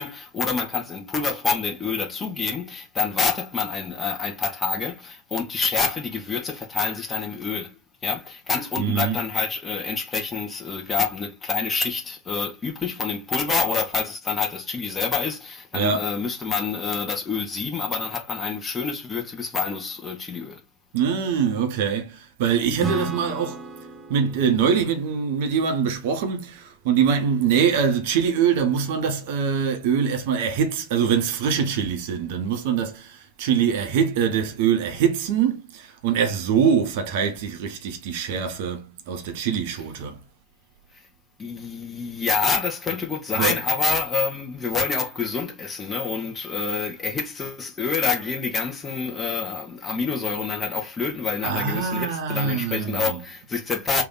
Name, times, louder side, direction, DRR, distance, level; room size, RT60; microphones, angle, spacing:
voice 1, 0.0-20.6 41.4-54.0, left 5 dB, 15° left, 1.0 m, -27 dB
voice 2, 8.8-9.2 15.7-16.0 20.9-23.7 24.1-40.2 42.9-43.0 43.3-43.6 51.4-53.2, right 7 dB, 50° right, 0.8 m, -23 dB
Acoustic guitar / Strum, 22.8-26.4, right 4 dB, 15° right, 0.5 m, -35 dB
3.3 x 2.6 x 3.8 m
figure-of-eight pair, 90°, 0 cm